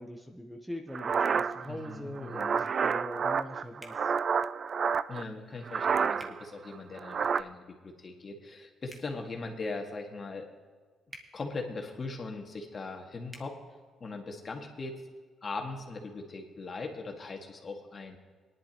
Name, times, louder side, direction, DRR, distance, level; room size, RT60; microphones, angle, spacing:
voice 1, 0.0-4.1, left 1 dB, 5° right, 3 dB, 1.0 m, -42 dB
sound 1, 0.9-5.2 5.6-6.4 6.7-7.4, right 6 dB, 50° right, 0.3 m, -29 dB
voice 2, 1.7-2.6 5.1-10.5 11.3-13.6 14.0-15.0 15.4-18.2, left 3 dB, 40° left, 2 dB, 1.9 m, -40 dB
sound 2, 3.8-4.0 6.2-6.4 8.8-9.1 11.1-11.3 13.3-13.5, right 1 dB, 20° right, 1.6 m, -48 dB
19.0 x 11.0 x 3.0 m, 1.5 s
cardioid pair, 90°, 0 cm